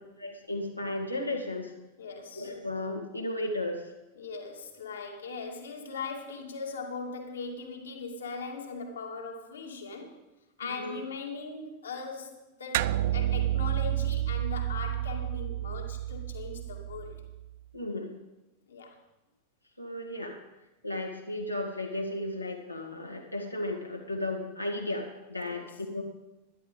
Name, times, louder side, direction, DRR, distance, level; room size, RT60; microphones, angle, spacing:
voice 1, 0.2-1.7 2.3-3.9 10.6-11.0 17.7-18.1 19.8-20.4 20.8-26.0, left 1 dB, 90° left, 1 dB, 2.1 m, -34 dB
voice 2, 2.0-2.5 4.2-10.2 10.6-17.2 18.7-19.0 25.5-25.7, left 4 dB, 70° left, 1 dB, 2.3 m, -40 dB
sound 1, 12.7-17.5, right 13 dB, 50° right, 0.3 m, -30 dB
12.5 x 11.0 x 5.3 m, 1.0 s
figure-of-eight pair, 90°, 0 cm